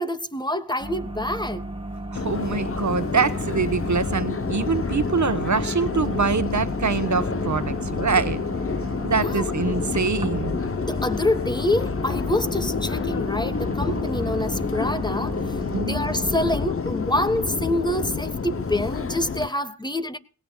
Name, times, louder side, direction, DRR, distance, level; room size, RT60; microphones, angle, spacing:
voice 1, 0.0-1.7 9.2-9.4 10.8-20.2, left 1 dB, 10° left, 1.3 m, -26 dB
sound 1, 0.8-16.7, right 1 dB, 15° right, 1.5 m, -34 dB
Subway metro underground, 2.1-19.5, left 5 dB, 35° left, 0.8 m, -28 dB
voice 2, 2.1-8.4 9.0-10.6 15.7-16.0, right 5 dB, 50° right, 1.2 m, -24 dB
19.0 x 17.5 x 2.3 m
cardioid pair, 50°, 37 cm